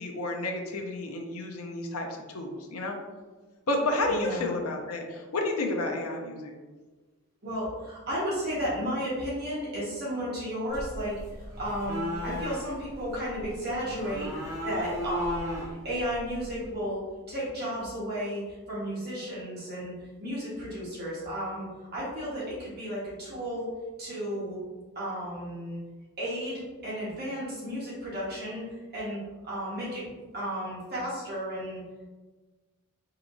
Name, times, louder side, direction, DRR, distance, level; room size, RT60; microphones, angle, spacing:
voice 1, 0.0-3.0 3.7-6.5, left 2 dB, 70° left, 2 dB, 0.6 m, -31 dB
voice 2, 4.1-4.5 7.4-11.2 11.6-15.6 15.8-17.0 17.3-23.7 24.0-24.6 24.9-25.8 26.2-31.8, equal, 45° right, -8 dB, 1.3 m, -33 dB
sound 1, 10.7-16.7, equal, 15° right, 0.9 m, -37 dB
4.6 x 2.9 x 2.6 m, 1.3 s
head